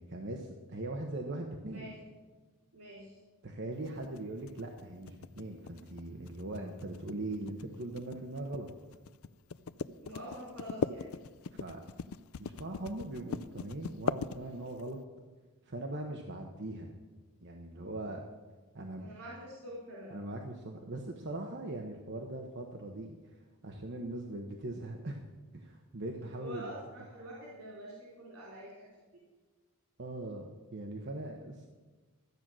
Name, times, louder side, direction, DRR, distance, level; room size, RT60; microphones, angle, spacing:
voice 1, 0.0-1.9 3.4-9.0 11.5-11.8 12.4-15.0 15.6-16.9 17.4-18.2 18.7-19.1 20.1-23.4 23.6-25.3 25.5-26.7 30.0-31.7, right 2 dB, 55° right, 2 dB, 1.0 m, -40 dB
voice 2, 2.7-3.2 10.0-11.1 19.0-20.2 26.4-28.9, equal, 85° right, -5 dB, 3.6 m, -46 dB
sound 1, 3.9-14.9, left 5 dB, 75° left, 0.4 m, -39 dB
13.5 x 8.9 x 6.2 m, 1.3 s
head